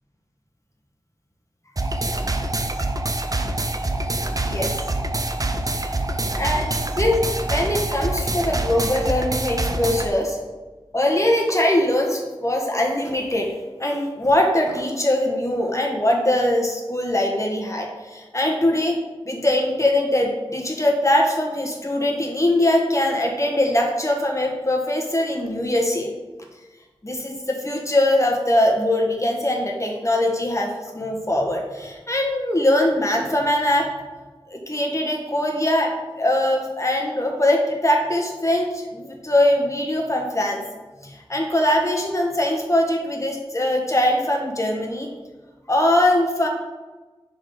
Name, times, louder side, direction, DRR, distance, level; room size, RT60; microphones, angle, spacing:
sound 1, 1.8-10.1, right 2 dB, 40° right, 0.5 m, -25 dB
voice 1, 4.4-4.8 6.4-10.4 10.9-13.5 13.8-19.0 19.2-26.1 27.0-33.9 34.5-40.6 41.0-45.1 45.7-46.5, left 1 dB, 30° left, 1 dB, 1.1 m, -22 dB
5.0 x 3.8 x 5.4 m, 1.2 s
wide cardioid pair, 55°, 10 cm